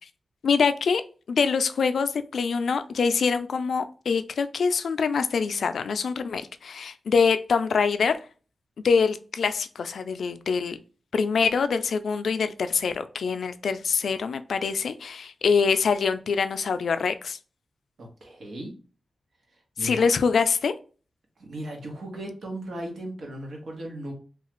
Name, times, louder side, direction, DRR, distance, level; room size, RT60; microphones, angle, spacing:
voice 1, 0.4-1.0 1.3-8.2 8.8-10.8 11.1-17.4 19.8-20.7, left 5 dB, 80° left, 10 dB, 0.3 m, -24 dB
voice 2, 18.0-18.7 19.8-20.0 21.4-24.1, right 1 dB, 75° right, 1 dB, 1.1 m, -36 dB
3.2 x 2.3 x 3.0 m, 0.37 s
cardioid pair, 80°, 0 cm